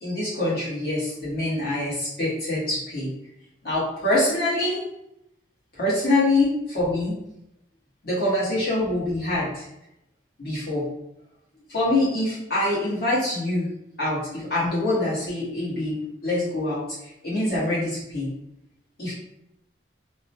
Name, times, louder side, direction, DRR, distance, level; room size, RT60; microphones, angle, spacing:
voice 1, 0.0-3.1 3.6-4.8 5.8-7.2 8.0-9.7 10.4-10.8 11.7-13.7 14.0-15.9 16.2-16.8 17.2-18.3 19.0-19.1, left 1 dB, 55° left, -8 dB, 1.4 m, -25 dB
2.9 x 2.1 x 2.8 m, 0.83 s
head